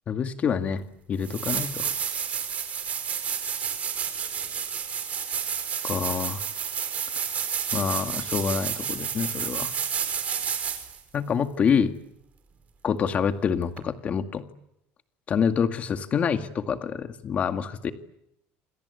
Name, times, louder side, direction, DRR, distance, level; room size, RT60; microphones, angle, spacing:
voice 1, 0.1-0.8 1.1-1.9 5.8-6.4 7.7-9.7 11.1-12.0 12.8-14.4 15.3-17.9, left 7 dB, 30° left, 8 dB, 2.0 m, -26 dB
sound 1, 0.7-0.8 1.2-11.0 13.8-13.9, right 7 dB, 30° right, 4.8 m, -30 dB
28.5 x 25.0 x 8.3 m, 0.81 s
cardioid pair, 170°, 5 cm